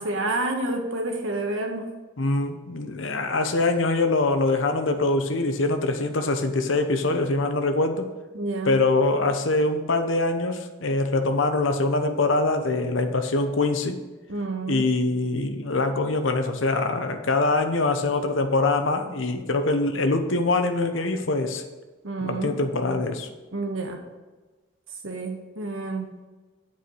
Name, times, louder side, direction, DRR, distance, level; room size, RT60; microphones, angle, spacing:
voice 1, 0.0-1.9 8.3-8.8 14.3-14.8 22.0-22.6 23.5-24.0 25.0-26.1, right 2 dB, 80° right, 3 dB, 1.4 m, -29 dB
voice 2, 2.2-8.1 8.6-14.0 14.7-21.6 22.2-23.3, left 2 dB, 70° left, 6 dB, 0.9 m, -24 dB
8.4 x 4.9 x 6.3 m, 1.2 s
head